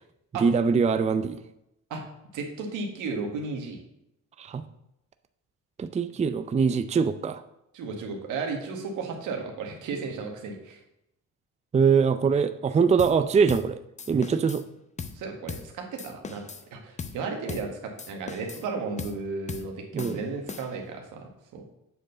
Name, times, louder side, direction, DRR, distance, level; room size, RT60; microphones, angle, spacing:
voice 1, 0.4-1.4 4.4-4.7 5.8-7.4 11.7-13.8 14.1-14.6 19.9-20.2, right 5 dB, 25° right, 10 dB, 0.4 m, -23 dB
voice 2, 2.3-3.8 7.7-10.8 15.1-16.4 16.7-21.6, right 4 dB, 90° right, 3 dB, 1.6 m, -34 dB
sound 1, 13.0-13.2 13.5-13.7 14.0-14.6 15.0-15.2 15.5-15.7 16.0-16.7 17.0-17.2 17.5-17.7 18.0-18.7 19.0-19.2 19.5-19.7 20.0-20.9, left 5 dB, 25° left, 0.6 m, -38 dB
7.8 x 4.5 x 6.6 m, 0.83 s
cardioid pair, 90°, 30 cm